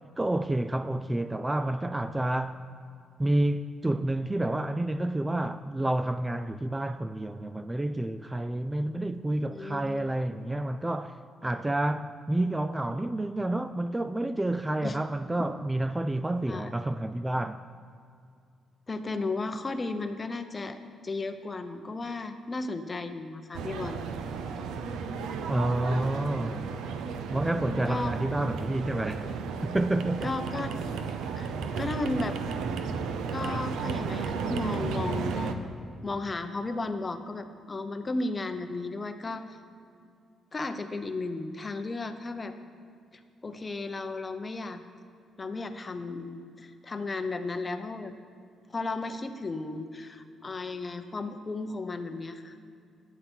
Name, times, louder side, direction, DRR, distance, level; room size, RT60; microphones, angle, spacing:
voice 1, 0.2-2.6 3.2-11.2 11.4-17.6 25.5-26.7 27.3-29.3 29.6-30.3, right 1 dB, 15° right, 0.3 m, -29 dB
voice 2, 9.5-10.5 14.8-15.0 15.4-15.5 16.5-16.7 18.9-20.8 21.0-24.0 27.9-28.1 30.2-30.7 31.3-31.5 31.8-32.4 33.3-35.7 36.0-39.6 40.5-42.5 43.4-44.8 45.4-48.1 48.7-52.6, left 3 dB, 30° left, 0.8 m, -34 dB
sound 1, 23.5-35.5, right 5 dB, 85° right, 0.7 m, -33 dB
12.0 x 9.3 x 4.5 m
cardioid pair, 90°, 0 cm